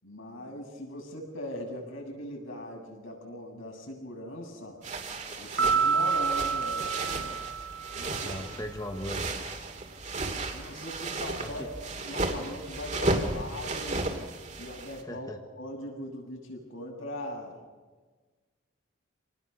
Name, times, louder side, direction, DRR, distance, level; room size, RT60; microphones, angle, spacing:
voice 1, 0.0-4.8 5.4-7.4 7.9-8.3 10.5-11.6 12.0-14.1 14.6-15.3 15.6-17.6, left 1 dB, 85° left, 0 dB, 7.3 m, -40 dB
sound 1, 4.8-15.0, right 2 dB, 35° right, 2.6 m, -34 dB
Piano, 5.6-8.1, right 6 dB, 75° right, 4.1 m, -28 dB
voice 2, 8.0-9.3 11.4-11.7 15.1-15.4, left 1 dB, 20° left, 5 dB, 1.3 m, -38 dB
27.5 x 19.0 x 6.8 m, 1.4 s
head